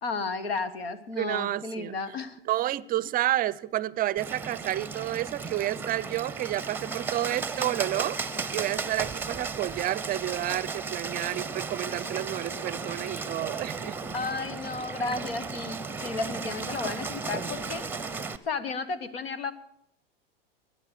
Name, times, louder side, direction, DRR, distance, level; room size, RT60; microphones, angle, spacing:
voice 1, 0.0-2.4 14.1-17.9 18.5-19.5, left 4 dB, 85° left, 1.3 m, -33 dB
voice 2, 1.2-2.0 2.5-8.2 8.5-14.1, right 14 dB, 30° right, 0.5 m, -30 dB
Bird, 4.2-18.4, right 4 dB, 5° right, 0.8 m, -35 dB
22.0 x 9.8 x 6.6 m
hypercardioid pair, 95°, 29 cm